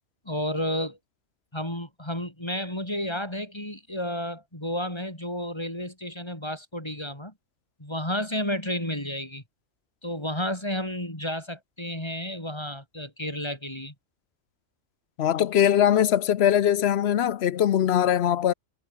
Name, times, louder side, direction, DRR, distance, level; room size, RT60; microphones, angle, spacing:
voice 1, 0.3-1.0 1.5-7.3 7.8-9.4 10.0-13.9, left 1 dB, 20° left, 5.2 m, -31 dB
voice 2, 15.2-18.5, left 10 dB, 60° left, 0.9 m, -21 dB
omnidirectional pair, 1.3 m